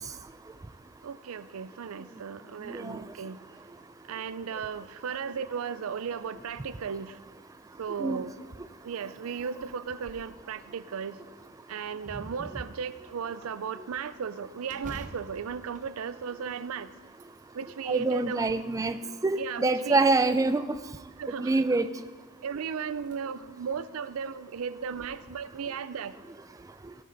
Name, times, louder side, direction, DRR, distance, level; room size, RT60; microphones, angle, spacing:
voice 1, 1.0-3.4 4.1-7.2 7.8-8.3 8.8-11.2 11.7-16.9 17.5-18.5 19.4-20.0 21.2-21.6 22.4-26.1, right 6 dB, 80° right, 15 dB, 0.4 m, -35 dB
voice 2, 2.7-3.0 8.0-8.2 17.9-19.0 19.2-20.6 21.4-21.9, right 3 dB, 15° right, 10 dB, 0.3 m, -25 dB
sound 1, 9.8-10.4 10.8-10.9 11.4-12.3 14.7-16.7 17.1-17.8 18.4-19.3 20.2-20.9 22.3-22.4 22.9-23.2 23.6-23.7 24.8-25.1, right 2 dB, 35° right, 0.8 m, -48 dB
16.5 x 6.5 x 4.0 m, 1.2 s
head